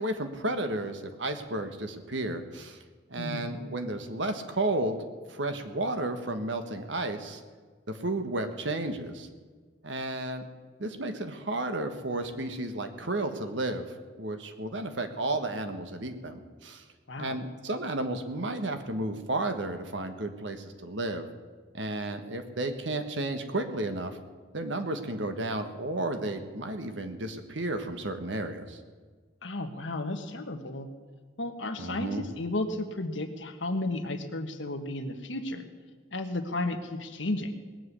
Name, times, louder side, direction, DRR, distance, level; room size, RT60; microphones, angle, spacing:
voice 1, 0.0-2.8 3.1-5.0 5.3-7.4 7.9-9.3 9.8-10.4 10.8-13.9 14.2-16.8 17.2-21.3 21.7-24.2 24.5-28.8 31.8-32.2, right 2 dB, 80° right, 7 dB, 1.5 m, -32 dB
voice 2, 3.2-3.5 17.1-17.4 29.4-30.9 31.4-35.7 36.1-37.5, left 2 dB, 80° left, 6 dB, 1.5 m, -33 dB
19.5 x 7.7 x 8.3 m, 1.5 s
head